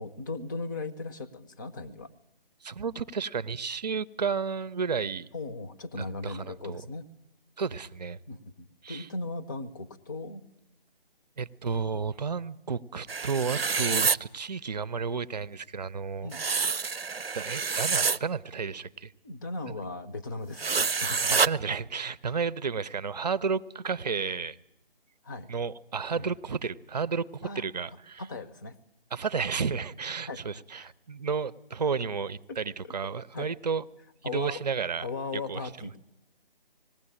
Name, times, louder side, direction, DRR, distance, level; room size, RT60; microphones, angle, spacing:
voice 1, 0.0-2.1 5.3-7.1 8.3-10.5 16.2-16.4 19.2-21.4 25.2-25.5 26.1-26.3 27.4-27.6 28.2-28.8 30.3-30.4 30.8-30.9 32.5-32.6 32.8-32.9 33.3-33.5 34.2-34.6 35.0-36.0, left 3 dB, 20° left, 9 dB, 0.8 m, -37 dB
voice 2, 2.6-5.3 6.0-6.8 7.6-8.2 8.8-9.1 11.4-16.3 17.3-19.1 21.3-24.6 25.5-28.2 29.1-33.8 34.2-35.1 35.5-35.6, right 5 dB, 45° right, 17 dB, 0.8 m, -32 dB
sound 1, 13.1-14.2 16.3-18.2 20.6-21.5, right 5 dB, 85° right, 0.7 m, -27 dB
19.5 x 16.0 x 10.0 m, 0.84 s
figure-of-eight pair, 150°, 29 cm